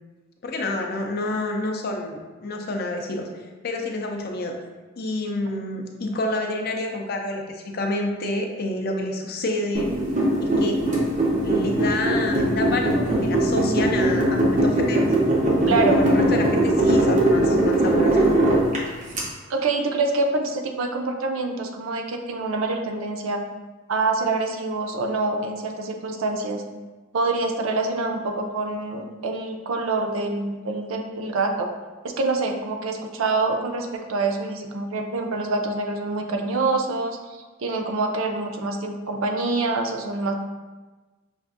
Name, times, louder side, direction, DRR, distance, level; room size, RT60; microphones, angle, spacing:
voice 1, 0.4-3.3 3.6-4.6 5.0-9.9 10.4-10.8 11.4-15.1 15.7-18.3, left 2 dB, 50° left, 3 dB, 0.5 m, -28 dB
sound 1, 9.7-19.2, right 1 dB, 35° right, 0.7 m, -20 dB
voice 2, 15.7-16.0 19.5-23.4 23.9-26.6 27.1-31.7 32.0-40.3, right 3 dB, 80° right, 4 dB, 0.5 m, -26 dB
5.8 x 2.5 x 2.4 m, 1.2 s
head